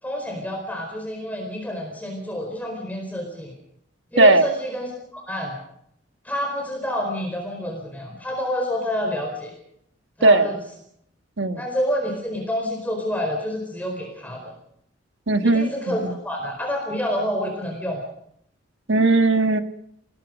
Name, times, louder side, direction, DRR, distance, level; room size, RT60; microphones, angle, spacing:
voice 1, 0.0-3.5 4.1-5.6 6.2-9.5 10.2-10.6 11.6-14.5 15.4-18.0, equal, 10° left, 1 dB, 4.6 m, -28 dB
voice 2, 15.3-16.1 18.9-19.6, right 2 dB, 70° right, 7 dB, 1.6 m, -17 dB
29.0 x 20.5 x 5.2 m, 0.74 s
head